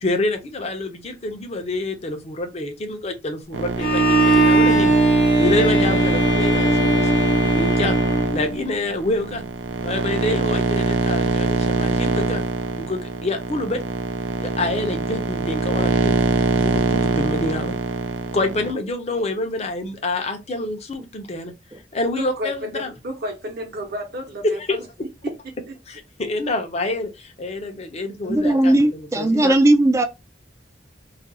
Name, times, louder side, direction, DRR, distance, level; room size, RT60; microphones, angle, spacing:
voice 1, 0.0-4.9 5.4-7.1 7.5-8.0 8.3-9.4 9.8-12.4 12.8-13.8 14.4-16.2 16.5-17.7 18.3-21.5 21.9-22.9 24.5-24.8 25.9-29.5, left 2 dB, 35° left, 0.6 m, -27 dB
sound 1, 3.5-18.7, right 4 dB, 90° right, 0.4 m, -22 dB
Bowed string instrument, 3.8-8.8, right 1 dB, 65° left, 0.8 m, -20 dB
voice 2, 22.1-24.6, equal, 55° right, 0.8 m, -31 dB
voice 3, 28.2-30.0, right 1 dB, 15° right, 0.3 m, -17 dB
2.4 x 2.3 x 2.7 m
head